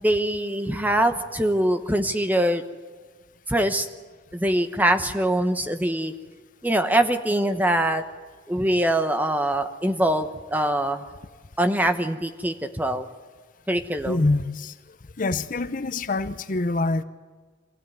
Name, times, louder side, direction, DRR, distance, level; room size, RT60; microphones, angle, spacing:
voice 1, 0.0-2.6 3.5-3.9 4.3-6.1 6.6-8.0 8.5-11.0 11.6-13.1 13.7-14.3, right 1 dB, 10° right, 8 dB, 1.0 m, -23 dB
voice 2, 14.1-14.7 15.2-17.0, left 2 dB, 45° left, 12 dB, 0.7 m, -25 dB
25.0 x 16.0 x 9.4 m, 1.4 s
head